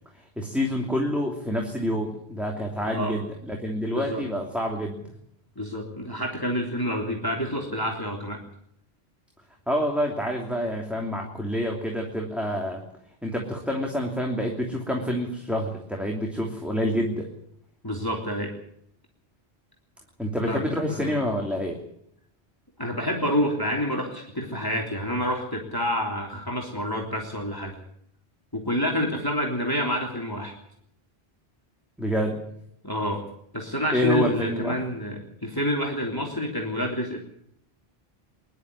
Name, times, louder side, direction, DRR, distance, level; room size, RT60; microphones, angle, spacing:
voice 1, 0.4-5.0 9.7-12.8 13.2-17.3 20.2-21.8 32.0-32.4 33.9-34.8, equal, ahead, 0 dB, 2.9 m, -27 dB
voice 2, 3.9-4.2 5.5-8.4 17.8-18.5 20.5-21.2 22.8-27.8 28.5-30.5 32.8-33.2 33.5-37.2, equal, 20° left, -1 dB, 3.4 m, -28 dB
23.5 x 11.5 x 9.7 m, 0.73 s
omnidirectional pair, 1.1 m